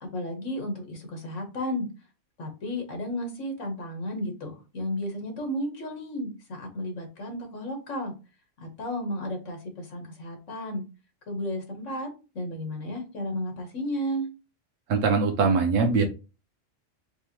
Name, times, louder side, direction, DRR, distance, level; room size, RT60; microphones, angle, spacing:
voice 1, 0.0-1.9 2.4-8.1 8.6-10.8 11.3-12.1 12.3-14.3, left 1 dB, 85° left, 4 dB, 1.6 m, -33 dB
voice 2, 14.9-16.0, right 4 dB, 90° right, 4 dB, 1.2 m, -22 dB
4.6 x 3.5 x 2.9 m, 0.30 s
omnidirectional pair, 1.3 m